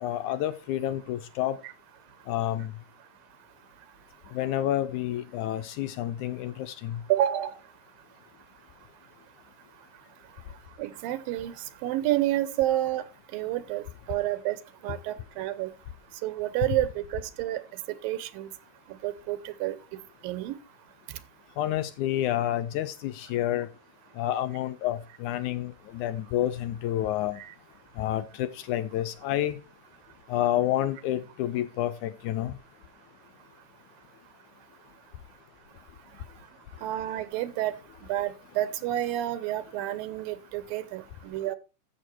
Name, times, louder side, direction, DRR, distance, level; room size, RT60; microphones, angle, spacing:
voice 1, 0.0-1.6 2.3-2.7 4.3-7.0 21.6-23.7 24.2-27.4 28.0-29.6 30.3-32.6, left 12 dB, 75° left, 1.9 m, -29 dB
voice 2, 7.1-7.6 10.8-11.5 11.8-13.0 13.3-14.6 14.8-15.7 16.2-17.6 18.0-18.5 19.0-19.8 20.2-20.6 27.4-27.5 36.8-37.7 38.1-41.6, right 14 dB, 90° right, 2.7 m, -29 dB
13.5 x 6.7 x 4.5 m
omnidirectional pair, 3.9 m